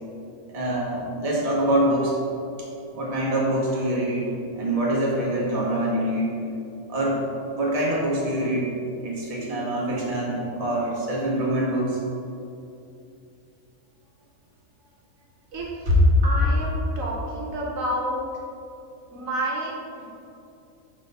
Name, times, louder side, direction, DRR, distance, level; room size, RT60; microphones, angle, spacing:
voice 1, 0.5-2.1 2.9-6.3 6.9-7.2 7.5-8.7 9.0-12.0 15.9-16.0, right 1 dB, 30° right, -5 dB, 1.1 m, -25 dB
voice 2, 15.5-16.0 16.2-18.2 19.1-20.1, right 1 dB, 70° right, -3 dB, 1.3 m, -30 dB
6.1 x 3.2 x 5.4 m, 2.7 s
omnidirectional pair, 1.5 m